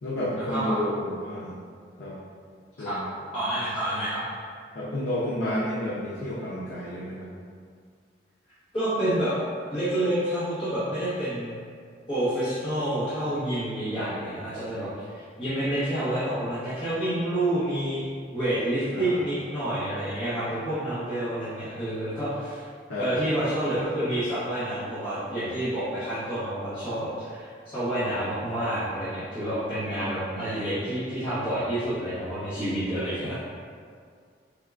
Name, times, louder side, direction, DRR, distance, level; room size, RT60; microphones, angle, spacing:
voice 1, 0.0-1.6 2.0-2.2 2.8-3.1 4.7-7.3 18.9-19.2 22.9-23.1 29.9-30.5, left 1 dB, 90° left, -7 dB, 0.6 m, -31 dB
voice 2, 3.3-4.2 8.7-9.4 9.7-11.5 12.1-18.0 18.3-22.7 23.0-33.5, right 1 dB, 30° left, -15 dB, 1.0 m, -28 dB
4.4 x 3.6 x 2.4 m, 2.1 s
head